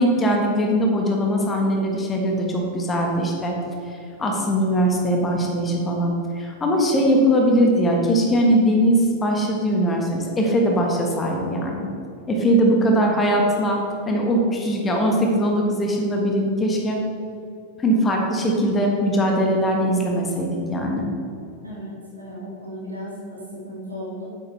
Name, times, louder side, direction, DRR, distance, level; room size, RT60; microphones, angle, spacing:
voice 1, 0.0-3.6 4.2-11.9 12.3-13.8 14.1-17.0 17.8-21.1, equal, 20° left, 0 dB, 1.5 m, -21 dB
voice 2, 21.6-24.2, equal, 80° right, -5 dB, 2.0 m, -35 dB
9.0 x 8.3 x 3.3 m, 2.6 s
figure-of-eight pair, 90°, 0 cm